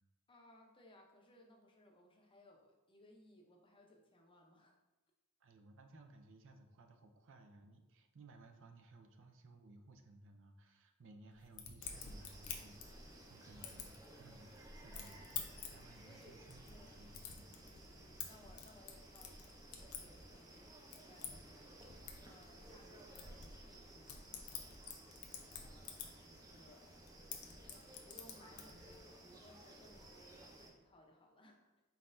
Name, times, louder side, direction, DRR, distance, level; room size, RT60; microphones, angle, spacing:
voice 1, 0.3-4.8 16.0-17.0 17.6-21.7 22.2-24.9 25.5-27.0 27.4-31.7, left 1 dB, 25° left, 1 dB, 0.6 m, -64 dB
voice 2, 5.4-17.7, right 2 dB, 60° right, 5 dB, 0.5 m, -60 dB
sound 1, 11.4-13.3 13.6-14.3 14.7-20.4 20.7-26.5 26.8-29.0, left 7 dB, 75° left, 0.6 m, -50 dB
sound 2, 11.8-30.7, right 1 dB, 15° right, 0.6 m, -57 dB
4.2 x 3.9 x 2.6 m, 1.0 s
head